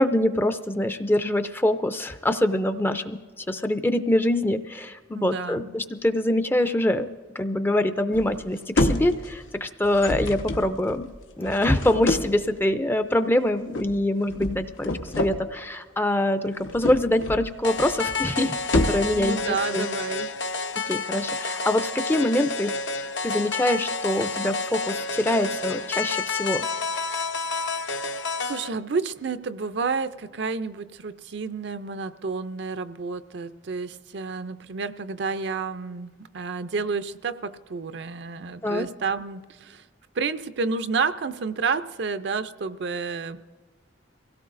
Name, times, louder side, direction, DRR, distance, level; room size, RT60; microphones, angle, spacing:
voice 1, 0.0-7.1 7.4-11.1 11.4-19.4 19.7-19.9 20.9-22.7 23.2-26.7 38.6-38.9, left 1 dB, 10° left, 10 dB, 0.4 m, -24 dB
voice 2, 5.1-5.8 19.1-20.3 28.5-39.8 40.1-43.4, right 4 dB, 60° right, 12 dB, 0.5 m, -30 dB
sound 1, 8.1-8.5 8.7-9.5 9.8-12.5 13.7-14.0 14.3-15.4 16.5-17.5 17.8-18.2 18.6-19.3, left 1 dB, 85° left, 1.1 m, -28 dB
sound 2, 17.6-28.7, left 3 dB, 65° left, 0.7 m, -29 dB
23.5 x 17.0 x 2.6 m, 1.4 s
head